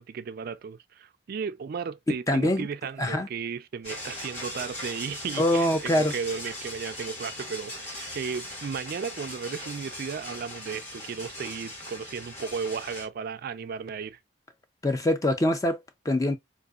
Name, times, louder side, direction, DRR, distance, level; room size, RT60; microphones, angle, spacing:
voice 1, 0.0-14.2, right 6 dB, 50° right, 0.3 m, -35 dB
voice 2, 2.3-2.7 3.0-3.3 5.4-6.1 14.8-16.4, left 1 dB, 15° left, 0.4 m, -24 dB
sound 1, 3.8-13.1, left 1 dB, 35° left, 2.1 m, -39 dB
3.8 x 2.5 x 2.3 m
head